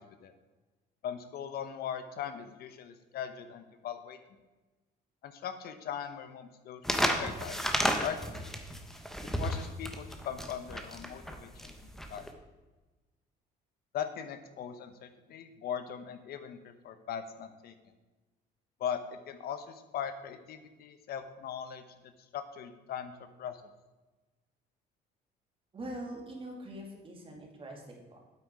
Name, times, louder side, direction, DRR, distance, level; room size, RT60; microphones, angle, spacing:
voice 1, 1.0-4.2 5.2-7.7 8.0-8.5 9.4-11.7 12.1-12.3 13.9-17.7 18.8-21.8 22.3-23.1 23.4-23.6, left 8 dB, 65° left, 9 dB, 0.9 m, -39 dB
sound 1, 6.8-12.3, equal, ahead, 1.1 m, -32 dB
voice 2, 25.7-28.2, right 1 dB, 30° right, 0 dB, 2.5 m, -43 dB
8.6 x 8.5 x 4.8 m, 1.2 s
cardioid pair, 110°, 17 cm